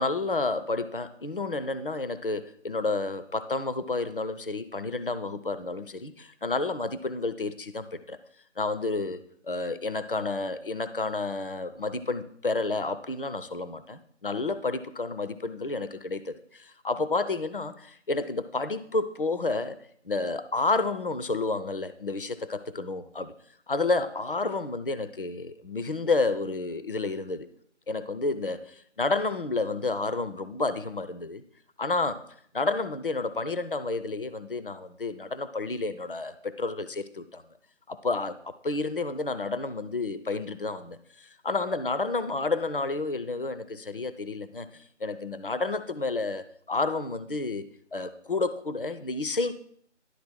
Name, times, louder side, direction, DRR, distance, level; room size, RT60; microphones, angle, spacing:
voice 1, 0.0-8.2 8.6-19.8 20.1-23.3 23.7-27.5 27.9-31.4 31.8-32.3 32.5-37.4 37.9-47.7 47.9-49.5, left 3 dB, 50° left, 12 dB, 0.5 m, -30 dB
11.0 x 4.0 x 6.1 m, 0.64 s
figure-of-eight pair, 170°, 36 cm